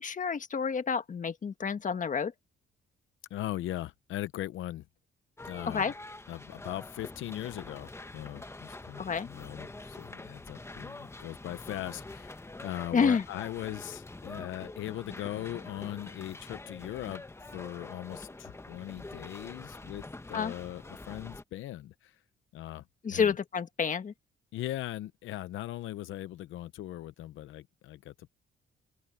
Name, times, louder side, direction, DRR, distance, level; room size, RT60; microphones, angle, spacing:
voice 1, 0.0-2.3 5.7-5.9 9.0-9.3 12.9-13.2 20.3-20.5 23.0-24.1, left 6 dB, 40° left, 1.6 m, -29 dB
voice 2, 3.3-4.8 5.4-5.9 6.3-22.2 22.5-22.8 23.1-23.3 24.5-28.3, left 14 dB, 80° left, 0.8 m, -39 dB
sound 1, 5.4-21.4, left 2 dB, 15° left, 1.2 m, -45 dB
open air
cardioid pair, 90°, 20 cm